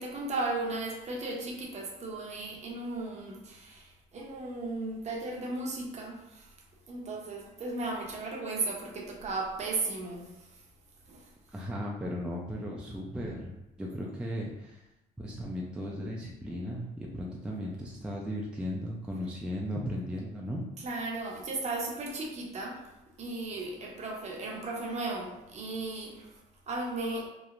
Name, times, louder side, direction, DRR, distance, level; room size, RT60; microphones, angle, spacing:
voice 1, 0.0-6.5 6.9-10.6 11.1-11.3 20.8-22.8 23.2-26.4 26.7-27.3, right 2 dB, 40° right, 0 dB, 0.7 m, -36 dB
voice 2, 11.5-13.5 13.8-14.8 15.2-20.6, equal, 5° right, -3 dB, 0.3 m, -36 dB
2.9 x 2.1 x 2.4 m, 0.93 s
cardioid pair, 110°, 17 cm